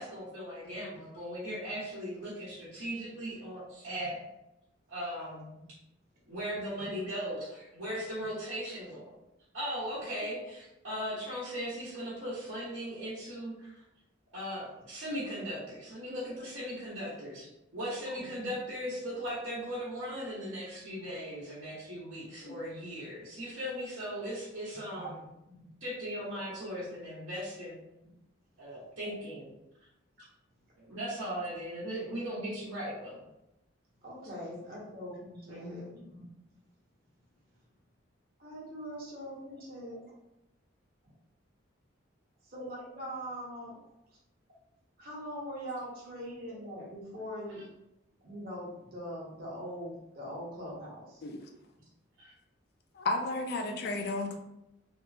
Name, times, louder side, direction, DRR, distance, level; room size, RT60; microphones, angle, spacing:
voice 1, 0.0-4.2 4.9-5.5 6.3-9.1 9.5-13.7 14.3-17.5 17.7-25.2 25.8-27.8 28.6-29.5 30.8-33.2 35.4-35.9 52.2-52.3, equal, 90° right, -11 dB, 1.0 m, -38 dB
voice 2, 0.6-1.0 6.8-6.9 18.2-18.3 24.9-25.1 25.5-25.7 34.0-36.3 38.4-40.1 42.4-43.8 45.0-47.6 48.2-51.3, equal, 50° right, -5 dB, 1.1 m, -42 dB
voice 3, 53.0-54.4, left 2 dB, 50° left, 4 dB, 0.4 m, -33 dB
3.4 x 2.0 x 2.6 m, 0.89 s
head